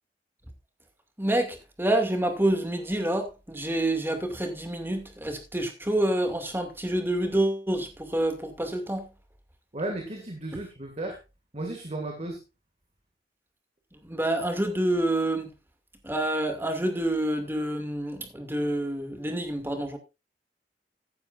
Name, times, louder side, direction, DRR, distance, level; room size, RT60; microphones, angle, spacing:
voice 1, 1.2-9.1 14.0-15.5 16.0-20.0, right 1 dB, 15° right, 2.4 m, -27 dB
voice 2, 9.7-11.2 11.5-12.4, right 2 dB, 35° right, 2.2 m, -34 dB
14.5 x 11.0 x 2.6 m
head